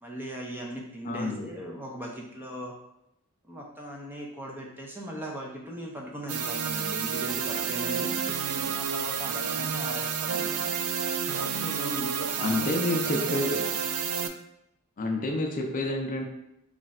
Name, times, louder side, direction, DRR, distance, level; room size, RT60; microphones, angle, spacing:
voice 1, 0.0-2.7 3.4-8.2 8.7-10.6 11.3-13.3 13.5-13.7, right 1 dB, 10° right, -1 dB, 0.5 m, -39 dB
voice 2, 1.1-1.5 12.4-13.6 15.0-16.2, left 2 dB, 40° left, 2 dB, 0.5 m, -28 dB
sound 1, 6.3-14.3, right 7 dB, 85° right, 0.4 m, -30 dB
3.2 x 2.4 x 4.1 m, 0.83 s
head